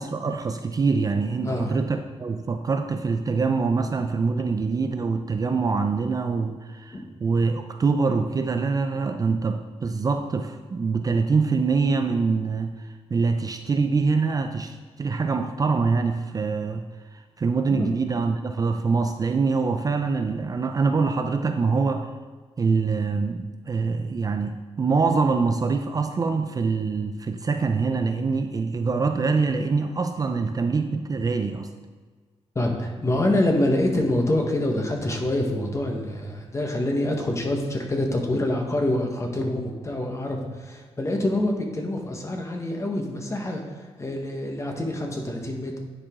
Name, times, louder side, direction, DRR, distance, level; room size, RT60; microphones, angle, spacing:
voice 1, 0.0-16.8 17.1-22.1 22.6-31.7, right 4 dB, 35° right, 6 dB, 0.4 m, -24 dB
voice 2, 1.4-1.8 6.9-7.0 17.6-17.9 32.5-43.6 44.0-45.7, left 1 dB, 25° left, 2 dB, 1.2 m, -26 dB
9.7 x 4.9 x 3.6 m, 1.5 s
cardioid pair, 110°, 11 cm